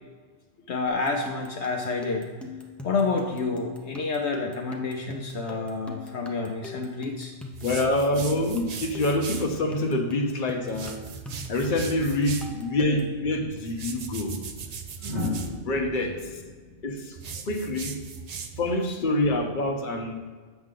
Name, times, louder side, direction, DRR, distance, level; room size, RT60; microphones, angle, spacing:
voice 1, 0.7-2.3 2.8-7.3, left 3 dB, 70° left, 2 dB, 0.9 m, -29 dB
sound 1, 0.9-13.2, left 3 dB, ahead, 0.4 m, -41 dB
sound 2, 7.5-9.5 10.7-12.6 13.7-15.5 17.2-18.8, right 6 dB, 55° right, 0.4 m, -38 dB
voice 2, 7.6-11.0 11.5-14.4 15.5-16.4 16.8-17.2 17.5-18.0 18.6-20.3, left 1 dB, 45° left, 2 dB, 1.0 m, -26 dB
sound 3, 13.4-13.6 15.0-18.1 19.6-19.9, left 2 dB, 40° right, 1.1 m, -35 dB
8.0 x 6.2 x 3.7 m, 1.5 s
omnidirectional pair, 1.2 m